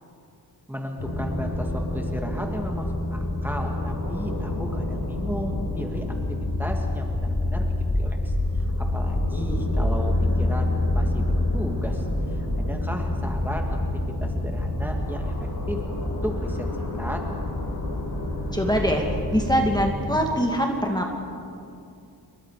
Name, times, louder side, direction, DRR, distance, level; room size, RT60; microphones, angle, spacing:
voice 1, 0.7-12.1 12.3-13.8 14.2-17.2, equal, 5° right, 1 dB, 2.4 m, -35 dB
sound 1, 1.0-19.8, left 1 dB, 85° left, 4.6 m, -27 dB
voice 2, 18.5-19.0 19.3-21.2, equal, 10° left, 1 dB, 2.3 m, -23 dB
29.0 x 23.0 x 5.0 m, 2.5 s
wide cardioid pair, 100°, 38 cm